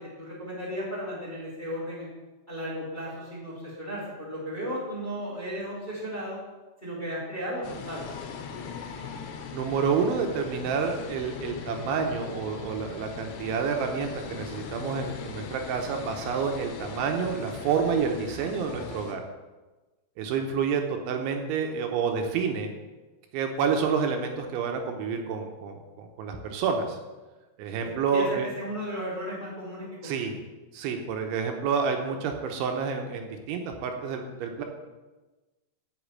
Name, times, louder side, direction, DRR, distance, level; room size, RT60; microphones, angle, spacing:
voice 1, 0.0-2.1 2.5-6.4 6.8-8.1 27.7-30.2, equal, 10° left, -6 dB, 2.5 m, -35 dB
sound 1, 7.6-19.1, left 6 dB, 75° left, 3.3 m, -40 dB
voice 2, 9.5-19.2 20.2-22.7 23.3-27.0 27.6-28.5 30.0-30.4 30.7-34.6, right 6 dB, 80° right, 4 dB, 3.3 m, -29 dB
8.5 x 7.1 x 8.7 m, 1.2 s
omnidirectional pair, 5.6 m